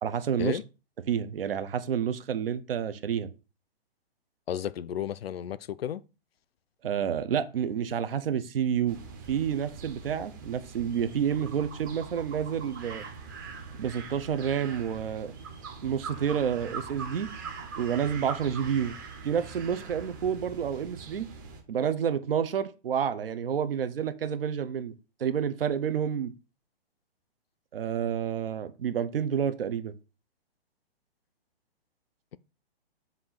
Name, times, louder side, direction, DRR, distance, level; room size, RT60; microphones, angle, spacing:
voice 1, 0.0-0.6 1.1-3.3 6.8-9.0 9.3-13.0 13.8-15.3 15.8-17.3 17.8-18.9 19.2-21.3 21.7-24.9 25.2-26.3 27.7-29.9, right 8 dB, 65° right, 0.9 m, -29 dB
voice 2, 4.5-6.0, left 10 dB, 70° left, 0.5 m, -33 dB
sound 1, 8.9-21.6, right 5 dB, 20° right, 0.8 m, -42 dB
7.5 x 2.8 x 5.7 m
hypercardioid pair, 170°, 32 cm